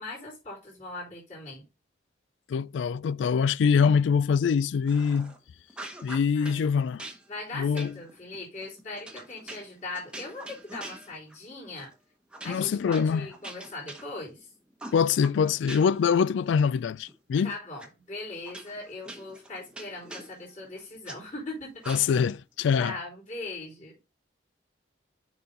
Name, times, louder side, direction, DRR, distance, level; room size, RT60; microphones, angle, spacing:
voice 1, 0.0-1.6 6.3-6.7 7.3-11.9 12.4-14.5 17.4-21.8 22.7-24.0, left 2 dB, 40° left, 4.0 m, -40 dB
voice 2, 2.5-5.3 6.0-7.0 7.5-7.9 12.5-13.2 14.9-17.5 21.9-22.9, left 6 dB, 80° left, 0.3 m, -24 dB
sound 1, 4.9-5.4 5.7-6.6 7.0-11.5 11.8-12.0 12.3-14.4 14.8-16.1 16.4-17.4 17.8-17.9 18.5-21.2 21.8-22.4, right 2 dB, 5° right, 0.9 m, -44 dB
6.8 x 5.5 x 3.8 m
head